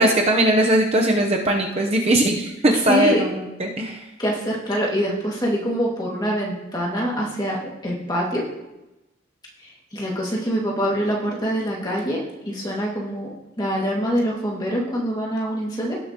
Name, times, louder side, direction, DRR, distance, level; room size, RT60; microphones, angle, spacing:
voice 1, 0.0-4.1, right 1 dB, 30° right, 1 dB, 0.8 m, -20 dB
voice 2, 2.9-3.2 4.2-7.6 7.8-8.4 9.9-12.2 12.5-13.3 13.6-15.9, equal, 20° left, -3 dB, 2.0 m, -24 dB
17.5 x 6.8 x 2.9 m, 0.98 s
head